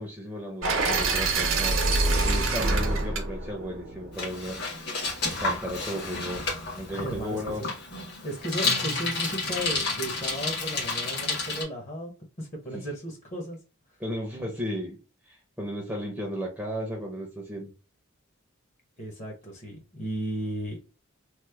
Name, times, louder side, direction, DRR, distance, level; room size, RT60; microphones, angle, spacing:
voice 1, 0.0-1.8 2.2-4.9 5.4-7.7 12.7-12.8 14.0-15.0 15.3-17.7, equal, 5° right, 0.6 m, -35 dB
sound 1, 0.6-4.7, right 3 dB, 70° right, 0.8 m, -26 dB
Bicycle, 4.1-11.6, left 3 dB, 55° left, 1.2 m, -31 dB
voice 2, 6.9-7.7 8.2-13.6 19.0-20.8, equal, 35° left, 0.8 m, -35 dB
3.1 x 2.0 x 3.3 m
head